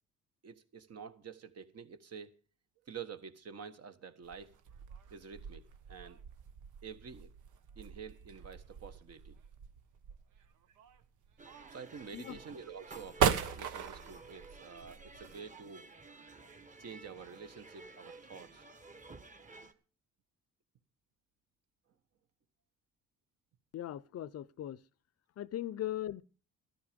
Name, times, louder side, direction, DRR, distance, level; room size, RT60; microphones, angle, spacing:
voice 1, 0.4-2.4 2.8-4.5 5.1-6.2 6.8-7.3 7.7-9.4 11.7-15.9 16.8-18.7, right 6 dB, 55° right, 1.5 m, -48 dB
sound 1, 4.2-15.4, right 7 dB, 80° right, 1.3 m, -39 dB
sound 2, 11.4-19.7, right 3 dB, 25° right, 1.3 m, -53 dB
voice 2, 23.7-24.8 25.4-26.2, left 12 dB, 55° left, 0.6 m, -39 dB
13.5 x 11.5 x 5.2 m
cardioid pair, 90°, 30 cm